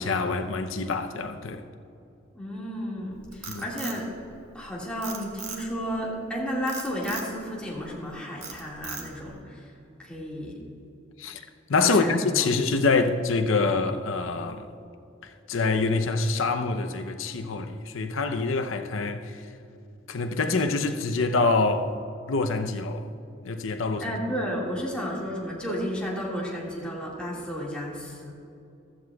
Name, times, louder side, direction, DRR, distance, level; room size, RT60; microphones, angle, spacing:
voice 1, 0.0-1.6 3.5-3.7 11.2-11.4 11.7-14.6 15.2-19.4 20.1-22.0 22.3-23.1 23.4-24.0, left 3 dB, 80° left, 0.7 m, -25 dB
voice 2, 2.3-4.1 4.5-9.6 10.0-10.6 11.8-12.7 24.0-28.3, equal, 5° left, 2.0 m, -32 dB
Frog, 3.1-4.6 5.0-5.9 6.7-7.3 7.8-8.1 8.4-9.3, right 5 dB, 85° right, 1.7 m, -38 dB
15.5 x 13.0 x 2.4 m
head